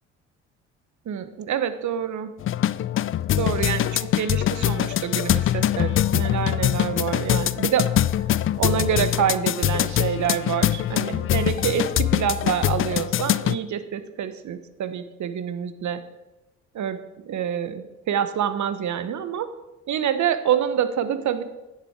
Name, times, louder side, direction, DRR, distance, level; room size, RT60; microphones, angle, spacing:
voice 1, 1.1-2.3 3.4-7.9 8.6-16.0 16.7-19.5 19.9-21.4, right 9 dB, 50° right, 12 dB, 1.0 m, -27 dB
sound 1, 2.4-13.6, left 12 dB, 35° left, 0.4 m, -23 dB
10.0 x 7.5 x 4.7 m, 1.0 s
hypercardioid pair, 55°, 36 cm